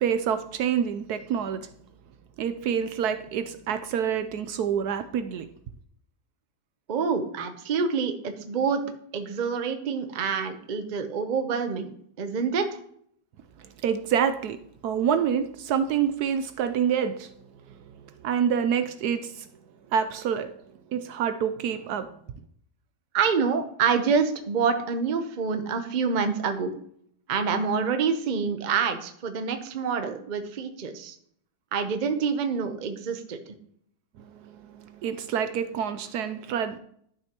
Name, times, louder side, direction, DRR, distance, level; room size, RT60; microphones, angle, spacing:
voice 1, 0.0-1.7 2.4-5.5 13.6-17.3 17.7-19.5 19.9-20.5 20.9-22.1 34.2-36.8, right 8 dB, 70° right, 1.0 m, -27 dB
voice 2, 6.9-8.8 9.1-12.7 23.1-26.7 27.3-31.1 31.7-33.4, right 5 dB, 45° right, 0.6 m, -27 dB
11.5 x 6.2 x 2.9 m
omnidirectional pair, 1.9 m